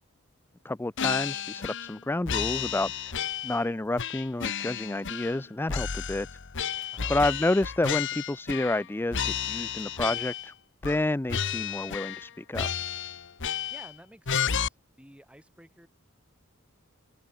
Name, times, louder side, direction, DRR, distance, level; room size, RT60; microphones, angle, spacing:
voice 1, 0.6-6.3 6.8-10.5 10.8-12.7, left 2 dB, 10° left, 0.4 m, -30 dB
sound 1, 1.0-2.0 2.3-3.6 4.0-5.4 5.7-8.8 9.1-10.5 10.8-11.0 11.3-12.3 12.5-13.9 14.3-14.7, left 7 dB, 60° left, 1.2 m, -32 dB
voice 2, 13.7-15.9, right 1 dB, 5° right, 8.0 m, -52 dB
head